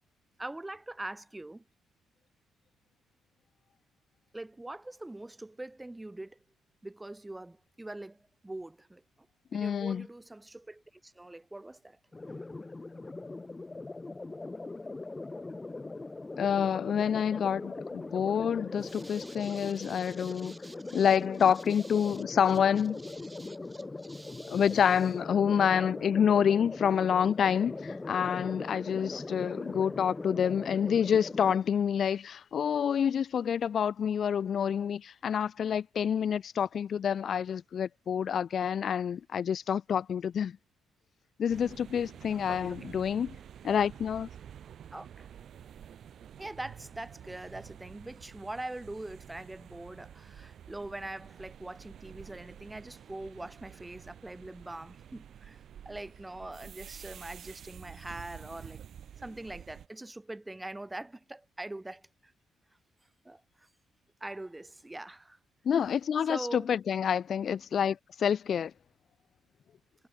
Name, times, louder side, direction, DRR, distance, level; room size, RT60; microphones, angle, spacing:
voice 1, 0.4-1.6 4.3-6.4 6.8-9.0 9.5-12.0 12.2-12.4 18.8-21.2 21.7-22.2 23.0-24.8 25.6-25.8 29.1-29.2 42.3-42.8 44.9-45.3 46.4-55.6 55.9-58.8 59.2-62.3 63.2-63.7 64.2-65.4 66.3-66.7, right 2 dB, 10° right, 2.2 m, -43 dB
voice 2, 9.5-10.0 16.4-20.5 20.9-23.0 24.5-40.5 41.4-43.3 43.6-44.3 65.6-68.7, left 8 dB, 55° left, 0.7 m, -28 dB
sound 1, 12.1-31.6, left 3 dB, 20° left, 1.0 m, -41 dB
sound 2, 41.5-59.9, right 9 dB, 65° right, 7.1 m, -49 dB
cardioid pair, 90°, 0 cm